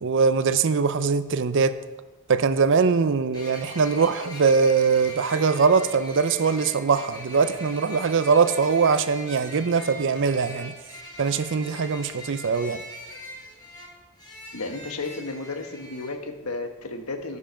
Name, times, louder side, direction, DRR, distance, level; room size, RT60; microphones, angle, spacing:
voice 1, 0.0-1.8 2.3-10.7 11.2-12.8, right 5 dB, 55° right, 0.5 m, -22 dB
sound 1, 3.3-16.1, left 1 dB, 20° left, 3.2 m, -41 dB
voice 2, 14.5-17.4, left 3 dB, 80° left, 1.1 m, -33 dB
14.5 x 5.6 x 5.2 m
head